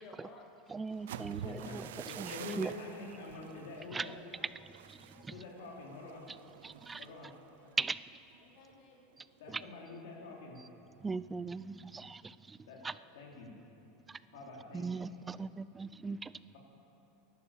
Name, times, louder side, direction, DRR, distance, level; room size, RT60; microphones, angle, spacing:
voice 1, 0.0-1.5 3.7-4.5 5.0-6.0 7.3-7.8 8.4-9.0 9.3-9.4 9.7-10.4, left 3 dB, 45° left, 1 dB, 2.5 m, -58 dB
voice 2, 0.7-1.9 2.2-2.7 3.9-4.1 4.9-5.4 6.6-7.1 7.8-8.0 9.5-9.6 11.0-12.6 12.8-13.0 14.1-14.2 14.7-16.3, right 4 dB, 10° right, 16 dB, 0.3 m, -39 dB
sound 1, 0.9-8.8 9.1-9.5 9.8-10.2, right 11 dB, 85° right, 0.5 m, -49 dB
voice 3, 1.4-4.2 5.3-6.3 7.0-7.3 9.4-10.6 12.7-12.9 13.1-13.6 14.3-15.1, left 2 dB, 80° left, -1 dB, 3.5 m, -46 dB
12.0 x 11.5 x 8.5 m, 2.9 s
supercardioid pair, 150°, 0 cm